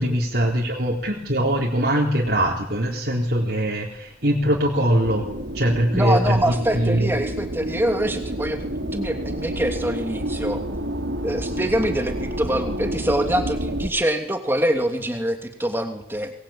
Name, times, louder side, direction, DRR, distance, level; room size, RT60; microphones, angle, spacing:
voice 1, 0.0-6.4 6.7-7.1, right 1 dB, 55° right, -3 dB, 4.0 m, -22 dB
sound 1, 5.0-13.9, right 1 dB, 90° right, 3.0 m, -29 dB
voice 2, 5.9-10.6 11.2-16.3, right 1 dB, 10° right, 4 dB, 2.8 m, -25 dB
23.5 x 21.5 x 8.9 m, 0.80 s
head